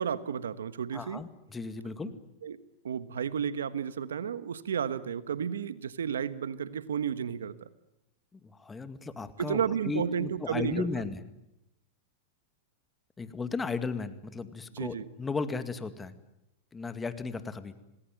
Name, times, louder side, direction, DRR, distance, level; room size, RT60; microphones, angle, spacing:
voice 1, 0.0-1.2 2.4-2.6 2.8-7.7 9.4-10.9 14.7-15.1, right 8 dB, 85° right, 14 dB, 1.3 m, -32 dB
voice 2, 0.9-2.1 8.3-11.2 13.2-16.1 16.7-17.7, left 4 dB, 15° left, 10 dB, 2.1 m, -35 dB
27.0 x 19.5 x 9.2 m, 0.89 s
hypercardioid pair, 110°, 0 cm